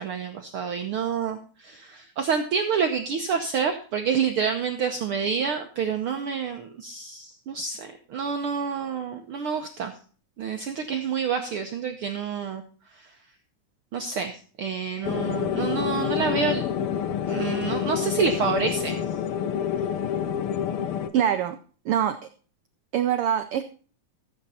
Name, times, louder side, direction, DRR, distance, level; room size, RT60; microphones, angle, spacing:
voice 1, 0.0-9.9 10.4-12.6 12.9-13.1 13.9-16.7 17.3-19.0, right 6 dB, 65° right, 5 dB, 1.4 m, -28 dB
sound 1, 15.0-21.1, left 8 dB, 75° left, 1.2 m, -28 dB
voice 2, 21.1-21.6 21.8-22.2 22.9-23.6, right 10 dB, 85° right, 9 dB, 1.2 m, -23 dB
14.5 x 8.1 x 4.2 m, 0.40 s
omnidirectional pair, 3.4 m